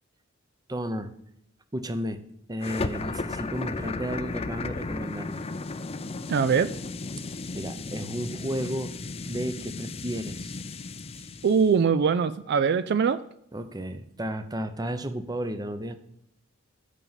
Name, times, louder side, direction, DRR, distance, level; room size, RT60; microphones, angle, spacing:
voice 1, 0.7-1.1 1.7-2.2 2.5-5.5 7.1-8.9 9.3-10.6 11.1-11.3 13.5-16.0, equal, 20° right, 10 dB, 0.7 m, -33 dB
sound 1, 2.6-11.7, left 3 dB, 30° left, 0.5 m, -35 dB
voice 2, 6.3-6.7 11.4-13.2, right 6 dB, 55° right, 13 dB, 0.4 m, -22 dB
8.3 x 5.5 x 7.2 m, 0.74 s
head